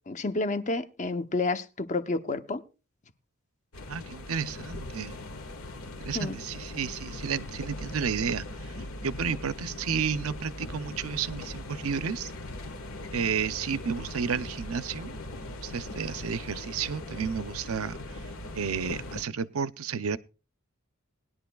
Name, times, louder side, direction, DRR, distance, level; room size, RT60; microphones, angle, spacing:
voice 1, 0.1-2.6 6.1-6.4, left 3 dB, 35° left, 0.8 m, -30 dB
sound 1, 3.7-19.2, left 1 dB, 80° left, 1.5 m, -40 dB
voice 2, 3.9-5.2 5.8-8.7 9.0-12.3 13.1-15.2 15.4-18.0 18.5-20.2, right 6 dB, 75° right, 0.6 m, -32 dB
19.5 x 11.0 x 2.3 m
head